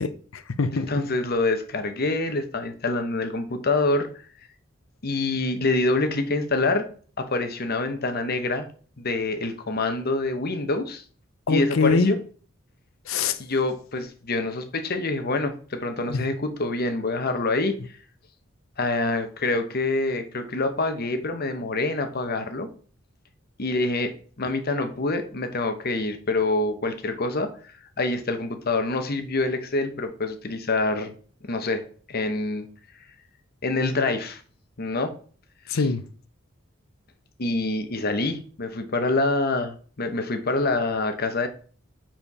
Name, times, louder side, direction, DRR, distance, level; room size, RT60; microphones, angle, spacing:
voice 1, 0.0-0.9 11.5-12.1 13.1-13.4 16.1-16.2 35.7-36.0, left 4 dB, 90° left, 0.7 m, -23 dB
voice 2, 0.7-4.1 5.0-6.9 7.2-8.7 9.0-11.0 11.5-12.2 13.4-17.8 18.8-22.7 23.6-31.1 31.5-32.7 33.6-34.4 34.8-35.1 35.7-35.9 37.4-41.5, left 2 dB, 50° left, 1.0 m, -26 dB
6.9 x 4.5 x 5.5 m
head